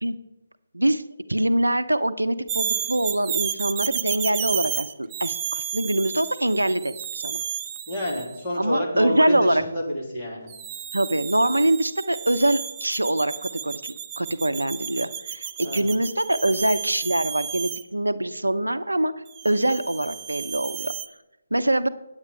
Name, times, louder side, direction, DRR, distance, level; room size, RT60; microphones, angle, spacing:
voice 1, 1.3-7.4 8.6-9.6 10.9-19.1 19.4-20.9 21.5-21.9, right 1 dB, 80° right, 12 dB, 0.6 m, -24 dB
sound 1, 2.5-8.3 10.5-17.8 19.3-21.1, right 9 dB, 20° right, 0.5 m, -32 dB
voice 2, 7.9-10.5 15.6-15.9, left 1 dB, 20° left, -5 dB, 2.8 m, -28 dB
8.8 x 8.6 x 5.5 m, 0.93 s
figure-of-eight pair, 150°, 0 cm